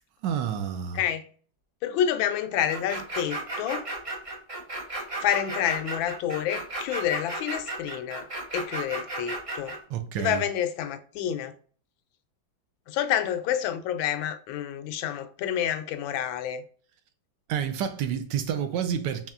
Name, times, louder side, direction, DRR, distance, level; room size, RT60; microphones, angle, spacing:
voice 1, 0.2-1.0 9.9-10.4 17.5-19.3, right 8 dB, 75° right, 1.1 m, -29 dB
voice 2, 1.8-3.9 5.2-9.8 10.2-11.5 12.9-16.6, left 10 dB, 85° left, 1.3 m, -28 dB
sound 1, 2.7-9.8, right 2 dB, 55° right, 0.3 m, -34 dB
4.2 x 3.6 x 2.4 m
omnidirectional pair, 2.1 m